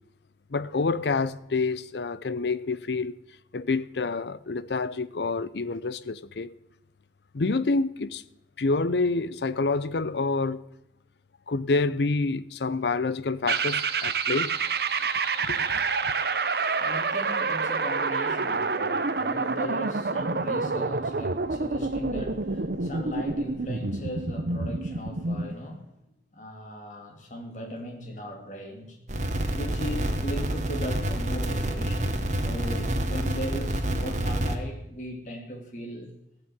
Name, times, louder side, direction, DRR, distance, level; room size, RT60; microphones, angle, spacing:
voice 1, 0.5-3.2 3.5-6.5 7.3-8.2 8.6-10.6 11.5-14.6 15.5-15.8, left 3 dB, 75° left, 0.6 m, -27 dB
sound 1, 13.5-25.5, right 4 dB, 60° right, 0.8 m, -28 dB
voice 2, 16.8-25.9 26.3-29.0 29.5-36.1, equal, 45° left, 2.7 m, -38 dB
sound 2, 29.1-34.6, right 1 dB, 45° right, 1.4 m, -28 dB
15.0 x 6.8 x 9.3 m
head